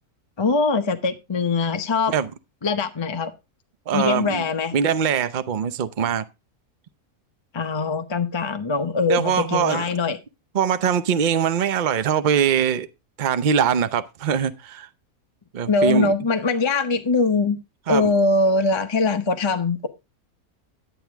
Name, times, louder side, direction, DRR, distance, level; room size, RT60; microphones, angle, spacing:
voice 1, 0.4-2.1 2.6-3.3 3.9-4.7 7.5-10.2 15.7-17.6 17.9-19.9, left 3 dB, 25° left, 0.6 m, -22 dB
voice 2, 3.9-4.4 4.7-6.2 9.1-9.8 10.5-12.9 13.2-14.9 15.5-16.1 17.9-18.1, right 8 dB, 45° right, 0.6 m, -22 dB
10.0 x 9.2 x 3.4 m
omnidirectional pair, 1.6 m